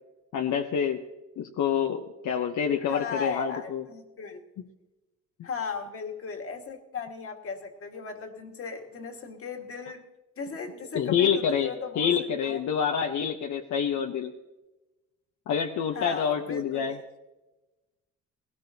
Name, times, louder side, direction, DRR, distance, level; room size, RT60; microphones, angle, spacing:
voice 1, 0.3-1.0 1.4-3.8 10.9-14.3 15.5-17.0, left 7 dB, 70° left, 3 dB, 0.9 m, -27 dB
voice 2, 2.8-4.4 5.4-10.0 10.4-12.6 16.0-17.0, left 5 dB, 45° left, 3 dB, 1.8 m, -36 dB
19.0 x 17.5 x 2.8 m, 1.1 s
cardioid pair, 90°, 30 cm